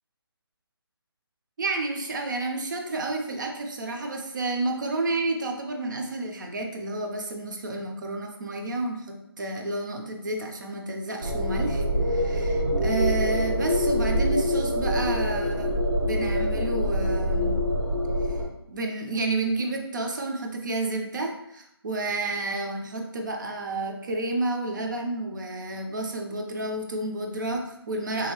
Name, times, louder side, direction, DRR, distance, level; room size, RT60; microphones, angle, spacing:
voice 1, 1.6-15.8 16.0-17.6 18.3-18.4 18.7-28.3, right 2 dB, 50° right, 3 dB, 0.5 m, -30 dB
sound 1, 11.2-18.4, equal, 90° right, 1.1 m, -25 dB
2.8 x 2.7 x 3.0 m, 0.80 s
figure-of-eight pair, 155°, 13 cm